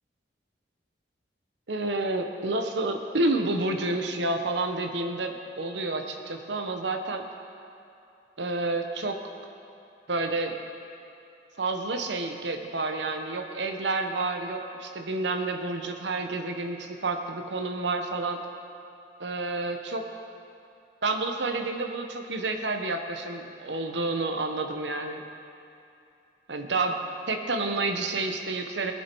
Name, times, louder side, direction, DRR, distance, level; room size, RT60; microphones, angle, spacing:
voice 1, 1.7-7.2 8.4-9.2 10.1-10.6 11.6-18.4 19.2-20.1 21.0-25.2 26.5-26.9 27.3-28.9, right 2 dB, 75° right, 5 dB, 1.0 m, -29 dB
21.0 x 7.3 x 4.6 m, 2.7 s
head